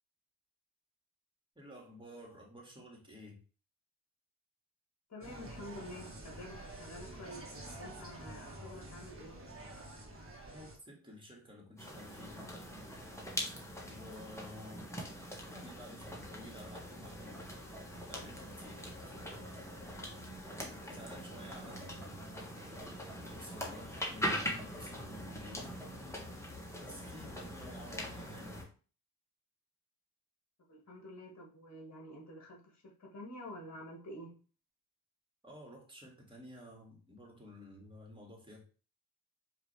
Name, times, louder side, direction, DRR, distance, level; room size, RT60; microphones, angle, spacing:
voice 1, 1.6-3.4 10.5-12.5 13.9-14.9 15.4-17.5 18.1-19.5 20.8-22.4 23.2-25.7 26.8-28.7 35.4-38.6, left 1 dB, 15° right, -1 dB, 2.1 m, -52 dB
voice 2, 5.1-7.5 7.8-9.4 30.7-34.3, left 1 dB, 40° left, -1 dB, 1.8 m, -48 dB
Insect, 5.2-10.8, right 1 dB, 35° right, 1.6 m, -48 dB
sound 1, 11.8-28.6, equal, 5° left, 1.5 m, -42 dB
4.9 x 3.0 x 3.3 m, 0.37 s
cardioid pair, 55°, 39 cm